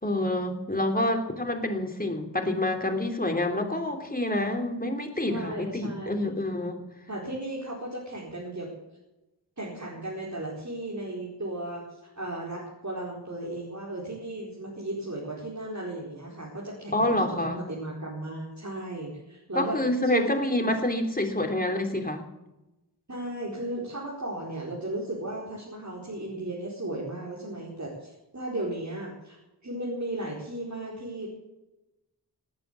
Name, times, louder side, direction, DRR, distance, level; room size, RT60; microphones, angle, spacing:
voice 1, 0.0-6.8 16.9-17.6 19.5-22.2, left 1 dB, 20° left, 4 dB, 3.0 m, -27 dB
voice 2, 5.3-6.3 7.1-8.7 9.6-20.4 23.1-29.4 29.6-31.3, right 1 dB, 40° right, -5 dB, 4.8 m, -35 dB
18.5 x 9.0 x 8.3 m, 0.97 s
wide cardioid pair, 55°, 41 cm